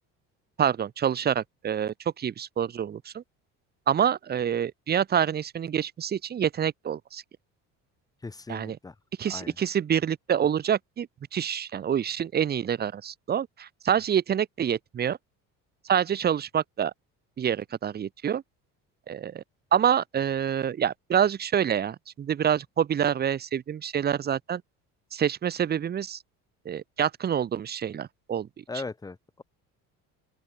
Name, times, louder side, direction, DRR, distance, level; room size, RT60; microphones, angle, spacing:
voice 1, 0.6-3.2 3.9-7.2 8.5-8.8 9.2-15.2 15.8-16.9 17.4-18.4 19.1-19.4 19.7-24.6 25.1-26.2 26.7-28.8, right 9 dB, 30° right, 1.8 m, -27 dB
voice 2, 8.2-8.9 9.3-9.5 28.7-29.4, left 3 dB, 10° left, 2.1 m, -38 dB
open air
cardioid pair, 155°, 31 cm